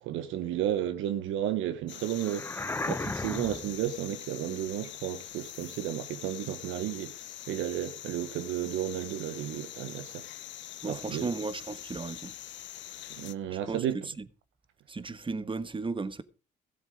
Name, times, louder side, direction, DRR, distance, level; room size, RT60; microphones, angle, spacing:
voice 1, 0.0-7.2 7.5-10.2 10.9-11.3 13.2-14.0, right 11 dB, 70° right, 1.0 m, -33 dB
sound 1, 1.9-13.3, left 12 dB, 65° left, 0.8 m, -44 dB
sound 2, 2.2-3.8, left 2 dB, 10° left, 0.6 m, -34 dB
voice 2, 10.8-12.3 13.5-13.9 14.2-14.3 14.9-16.2, right 4 dB, 25° right, 1.3 m, -35 dB
16.0 x 7.4 x 5.1 m
hypercardioid pair, 50°, 21 cm